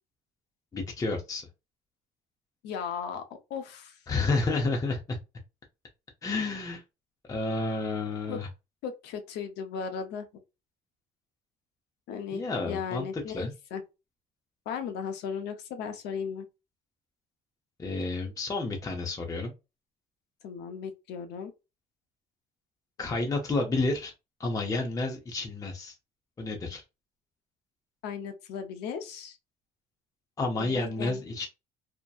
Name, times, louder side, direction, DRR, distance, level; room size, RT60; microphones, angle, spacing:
voice 1, 0.7-1.5 4.1-5.2 6.2-6.8 7.2-8.5 12.3-13.0 13.3-13.5 17.8-19.5 23.0-24.1 24.4-25.9 26.4-26.8 30.4-31.5, left 3 dB, 20° left, 0.6 m, -30 dB
voice 2, 2.6-3.2 3.5-4.0 8.3-8.4 8.8-10.3 12.1-13.8 14.7-16.5 20.4-21.5 28.0-29.4 30.6-31.2, left 7 dB, 85° left, 0.6 m, -36 dB
2.7 x 2.1 x 2.3 m
cardioid pair, 110°, 17 cm